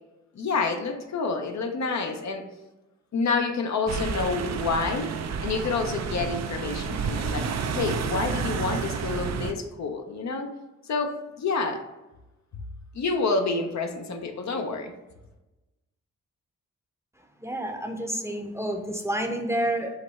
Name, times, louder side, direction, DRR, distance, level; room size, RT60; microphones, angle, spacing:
voice 1, 0.3-2.5 3.1-5.1 5.4-7.5 7.8-10.5 10.9-11.8 12.9-14.9, left 4 dB, 65° left, 4 dB, 0.6 m, -28 dB
sound 1, 3.9-9.5, right 5 dB, 60° right, 0.5 m, -30 dB
voice 2, 17.4-19.9, right 1 dB, 10° right, 4 dB, 0.7 m, -29 dB
5.0 x 2.2 x 4.0 m, 1.0 s
cardioid pair, 50°, 30 cm